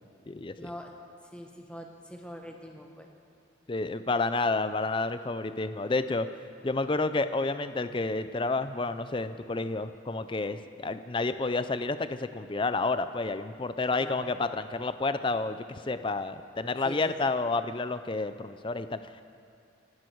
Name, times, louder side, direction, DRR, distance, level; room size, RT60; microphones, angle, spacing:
voice 1, 0.6-0.9 1.3-3.1 14.0-14.3 16.8-17.1, equal, 5° left, 2 dB, 1.3 m, -43 dB
voice 2, 3.7-6.3 6.6-19.2, left 3 dB, 25° left, 11 dB, 0.5 m, -30 dB
28.0 x 11.0 x 4.6 m, 2.4 s
head